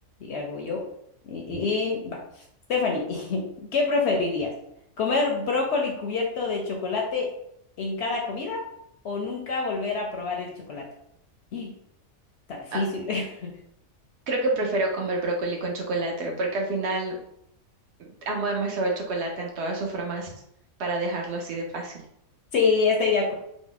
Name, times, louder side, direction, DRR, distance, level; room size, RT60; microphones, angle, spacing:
voice 1, 0.2-0.8 1.2-2.2 2.7-4.5 5.0-7.3 7.8-8.6 9.0-10.9 11.5-11.7 12.5-13.5 22.5-23.3, left 4 dB, 65° left, 0 dB, 0.7 m, -26 dB
voice 2, 14.3-17.2 18.0-20.3 20.8-22.0, right 2 dB, 60° right, 1 dB, 0.8 m, -28 dB
2.9 x 2.0 x 3.8 m, 0.74 s
omnidirectional pair, 1.4 m